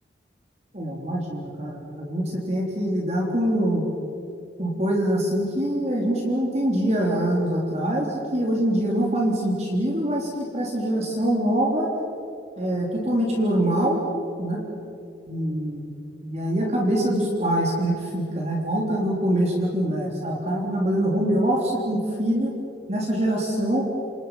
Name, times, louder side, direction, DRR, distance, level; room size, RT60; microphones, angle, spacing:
voice 1, 0.7-3.9 4.6-11.9 12.6-14.0 14.4-14.6 15.3-22.5 22.9-23.9, right 1 dB, 35° right, -1 dB, 3.7 m, -24 dB
29.0 x 27.0 x 5.8 m, 2.6 s
head